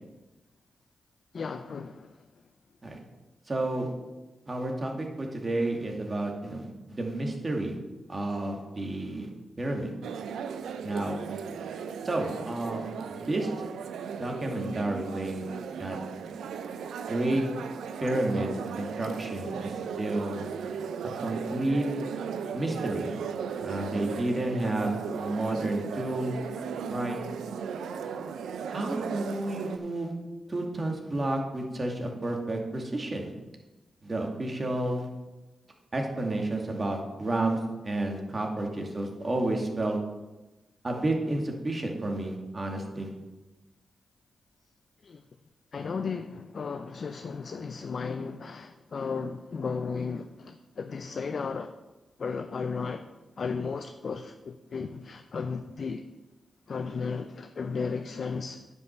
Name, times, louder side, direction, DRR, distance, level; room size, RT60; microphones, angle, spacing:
voice 1, 1.3-2.1 45.0-45.2 45.7-51.7 52.2-53.1 53.4-56.0 56.7-58.6, left 5 dB, 60° left, 8 dB, 0.5 m, -34 dB
voice 2, 3.5-3.9 4.5-7.7 8.1-9.3 9.6-9.9 10.8-11.2 12.0-13.5 14.2-15.4 15.8-16.0 17.1-17.4 18.0-20.5 21.2-21.9 22.5-23.1 23.6-26.4 26.9-27.2 28.7-30.1 30.5-33.3 34.0-35.1 35.9-37.6 37.8-40.0 40.8-43.1, right 2 dB, 40° right, 1 dB, 2.3 m, -31 dB
sound 1, 10.0-29.8, right 6 dB, 85° right, 0.6 m, -36 dB
9.5 x 5.5 x 6.8 m, 1.1 s
supercardioid pair, 45°, 0 cm